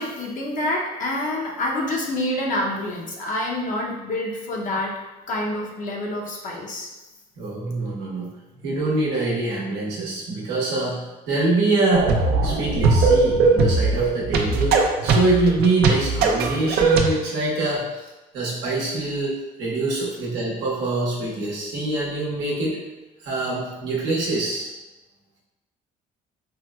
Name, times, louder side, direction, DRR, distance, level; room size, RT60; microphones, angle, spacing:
voice 1, 0.0-4.9 5.3-6.9, left 1 dB, 50° left, -2 dB, 0.6 m, -27 dB
voice 2, 7.4-8.3 8.6-12.2 12.4-18.1 18.3-22.8 23.2-24.7, right 2 dB, 90° right, -5 dB, 0.9 m, -24 dB
sound 1, 11.9-17.1, right 3 dB, 70° right, 0.5 m, -20 dB
4.3 x 2.1 x 2.3 m, 1.1 s
cardioid pair, 110°, 17 cm